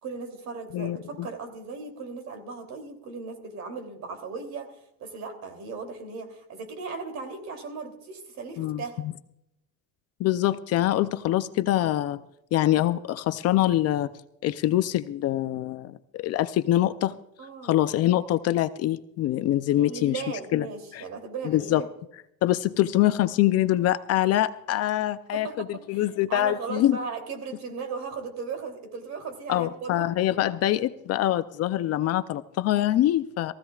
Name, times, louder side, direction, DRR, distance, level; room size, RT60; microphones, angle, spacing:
voice 1, 0.0-9.0 17.4-17.8 19.7-21.9 25.3-30.3, right 4 dB, 45° right, 6 dB, 3.0 m, -37 dB
voice 2, 0.7-1.3 8.6-9.1 10.2-12.2 12.5-14.1 14.4-17.1 17.6-20.2 20.5-20.7 20.9-21.0 21.4-21.8 22.4-27.0 29.5-33.5, left 13 dB, 45° left, 12 dB, 0.5 m, -24 dB
22.5 x 15.5 x 2.4 m, 0.79 s
cardioid pair, 150°, 36 cm